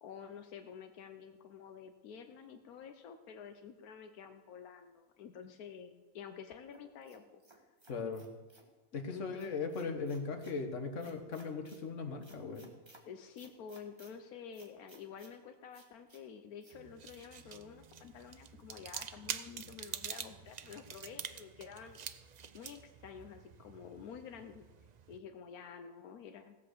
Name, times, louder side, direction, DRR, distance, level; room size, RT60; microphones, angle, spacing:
voice 1, 0.0-7.6 9.1-9.5 13.0-22.0 22.5-24.7 25.1-26.6, left 7 dB, 85° left, 7 dB, 1.2 m, -50 dB
sound 1, 6.7-8.7 9.4-10.6 11.0-11.8 12.2-13.0 13.4-14.1 14.5-15.3 15.7-16.2 16.6-16.8 17.0-17.2, right 2 dB, 20° right, 1.4 m, -61 dB
voice 2, 7.9-8.2 8.9-12.7, left 4 dB, 55° left, 5 dB, 1.6 m, -38 dB
sound 2, 16.7-25.2, right 7 dB, 80° right, 0.3 m, -47 dB
17.0 x 7.8 x 6.6 m, 1.2 s
omnidirectional pair, 1.5 m